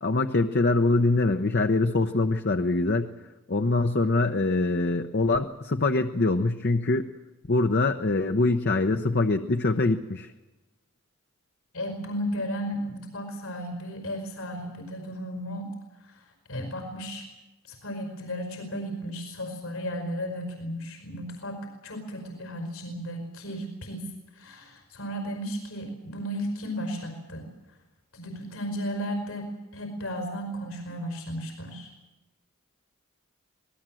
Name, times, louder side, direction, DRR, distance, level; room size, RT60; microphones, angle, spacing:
voice 1, 0.0-3.1 3.5-7.1 7.5-10.3, left 2 dB, 50° left, 7 dB, 0.9 m, -24 dB
voice 2, 11.7-15.7 16.0-17.2 17.6-27.5 28.1-31.9, equal, 80° left, 4 dB, 5.2 m, -34 dB
26.0 x 19.5 x 7.7 m, 1.1 s
head